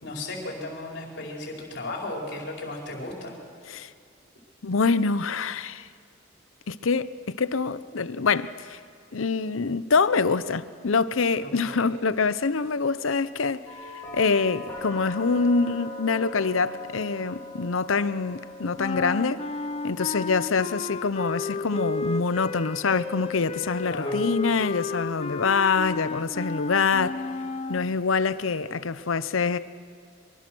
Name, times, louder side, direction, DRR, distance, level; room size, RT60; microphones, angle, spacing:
voice 1, 0.0-3.3 11.4-11.9 23.8-24.2, left 2 dB, 60° left, 4.8 m, -35 dB
voice 2, 4.6-5.9 6.7-8.8 9.1-13.6 14.1-19.4 19.8-27.2 27.7-29.6, left 4 dB, 85° left, 0.7 m, -25 dB
sound 1, 13.7-27.5, left 2 dB, 10° left, 6.4 m, -43 dB
sound 2, 18.8-27.9, left 3 dB, 30° left, 0.9 m, -33 dB
24.5 x 24.0 x 6.2 m
head